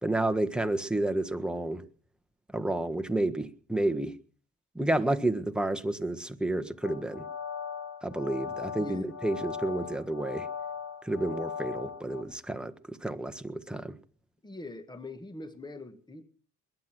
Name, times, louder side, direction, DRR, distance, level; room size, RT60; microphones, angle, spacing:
voice 1, 0.0-1.8 2.5-4.1 4.7-7.3 8.0-10.5 11.0-14.0, right 1 dB, 5° right, 1.4 m, -30 dB
sound 1, 6.8-12.2, left 7 dB, 60° left, 3.7 m, -39 dB
voice 2, 8.8-9.1 14.4-16.2, left 2 dB, 15° left, 1.7 m, -42 dB
21.0 x 9.7 x 6.2 m
cardioid pair, 90°, 30 cm